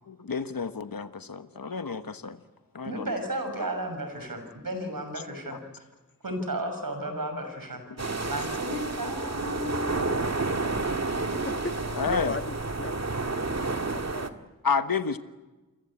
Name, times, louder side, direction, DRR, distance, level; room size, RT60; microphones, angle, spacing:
voice 1, 0.0-2.4 2.7-3.1 5.5-5.6 8.0-8.3 11.9-12.3 14.6-15.2, left 5 dB, 80° left, 9 dB, 1.3 m, -30 dB
voice 2, 2.8-5.9 6.2-11.1, right 1 dB, 75° right, 7 dB, 6.1 m, -34 dB
sound 1, 8.0-14.3, right 3 dB, 50° right, 2.0 m, -30 dB
voice 3, 11.5-13.2 13.6-14.5, left 2 dB, 35° left, 6 dB, 2.1 m, -37 dB
29.0 x 23.0 x 8.7 m, 1.1 s
wide cardioid pair, 60°, 34 cm